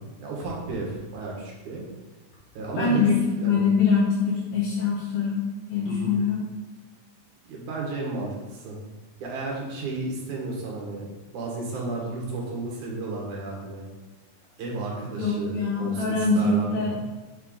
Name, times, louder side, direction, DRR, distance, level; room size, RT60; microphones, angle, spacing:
voice 1, 0.0-1.8 2.5-3.0 3.4-3.7 5.9-6.2 7.4-8.8 9.2-13.9 14.6-17.0, right 3 dB, 60° right, -2 dB, 2.7 m, -33 dB
voice 2, 2.8-5.4 5.7-6.4 15.2-17.0, left 4 dB, 90° left, -7 dB, 3.1 m, -23 dB
7.3 x 4.5 x 3.8 m, 1.2 s
omnidirectional pair, 4.2 m